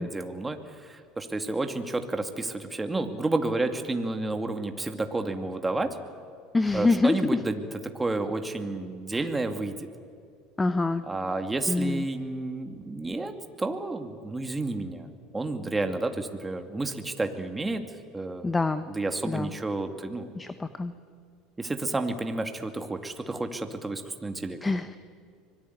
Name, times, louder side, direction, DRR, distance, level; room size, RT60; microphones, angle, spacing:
voice 1, 0.0-6.0 6.7-7.7 7.9-9.9 11.1-15.1 15.3-17.8 18.1-18.5 18.9-20.3 21.6-24.6, right 2 dB, 15° right, 6 dB, 2.5 m, -31 dB
voice 2, 6.5-7.4 9.1-9.3 10.6-11.0 11.7-12.0 18.4-18.8 19.2-19.5 20.3-20.9 24.6-25.0, left 3 dB, 15° left, 11 dB, 1.1 m, -26 dB
25.0 x 20.0 x 9.6 m, 2.3 s
hypercardioid pair, 85°, 0 cm